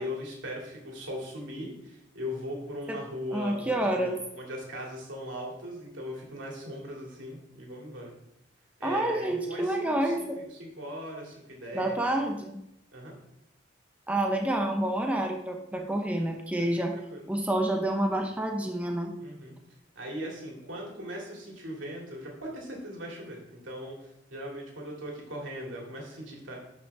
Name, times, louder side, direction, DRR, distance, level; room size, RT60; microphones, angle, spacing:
voice 1, 0.0-8.1 8.8-12.1 12.9-13.1 16.6-17.3 19.2-19.6 20.0-26.7, equal, 85° right, -2 dB, 2.5 m, -39 dB
voice 2, 3.3-4.2 8.8-10.4 11.7-12.6 14.1-16.9 17.3-19.1, right 1 dB, 5° right, 2 dB, 0.7 m, -28 dB
11.5 x 5.3 x 3.5 m, 0.85 s
head